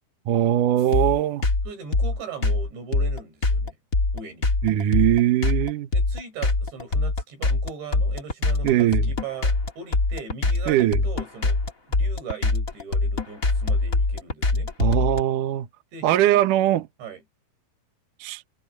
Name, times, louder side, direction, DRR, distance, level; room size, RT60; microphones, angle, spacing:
voice 1, 0.3-1.4 4.6-5.9 8.6-9.1 10.7-11.0 14.8-15.7 16.0-16.9 18.2-18.4, right 12 dB, 65° right, 2.2 m, -21 dB
sound 1, 0.9-15.2, left 3 dB, 25° left, 2.3 m, -23 dB
voice 2, 1.6-3.8 4.1-4.5 5.9-11.6 11.9-14.7 15.9-16.4 17.0-17.2, right 5 dB, 90° right, 8.4 m, -39 dB
omnidirectional pair, 5.0 m